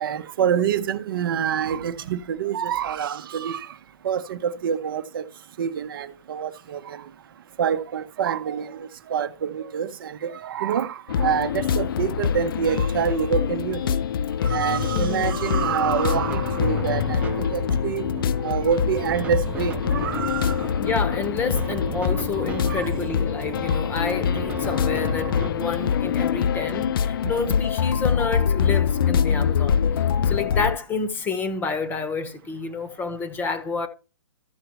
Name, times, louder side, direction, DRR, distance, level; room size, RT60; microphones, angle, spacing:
voice 1, 0.0-3.6 4.0-5.2 5.6-6.8 7.6-8.7 9.1-13.8 14.5-17.2 17.5-18.1 18.4-20.5 22.7-22.9, right 8 dB, 55° right, 0.8 m, -26 dB
sound 1, 11.1-30.8, left 7 dB, 55° left, 0.4 m, -24 dB
voice 2, 14.9-15.3 20.8-29.8 30.2-33.9, left 4 dB, 15° left, 1.0 m, -29 dB
sound 2, 16.1-25.5, right 7 dB, 10° right, 0.5 m, -36 dB
14.0 x 6.8 x 3.0 m
hypercardioid pair, 145°, 14 cm